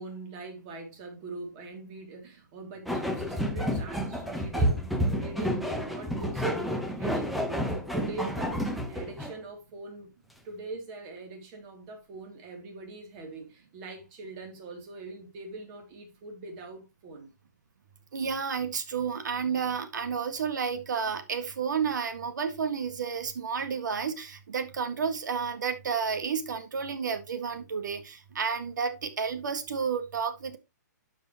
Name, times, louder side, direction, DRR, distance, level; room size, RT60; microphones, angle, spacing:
voice 1, 0.0-10.1 10.4-17.3, right 2 dB, 30° right, 2.7 m, -42 dB
sound 1, 2.9-9.4, equal, ahead, 0.8 m, -30 dB
voice 2, 18.1-30.6, right 6 dB, 75° right, 1.9 m, -31 dB
12.0 x 5.1 x 3.0 m
hypercardioid pair, 160°, 10 cm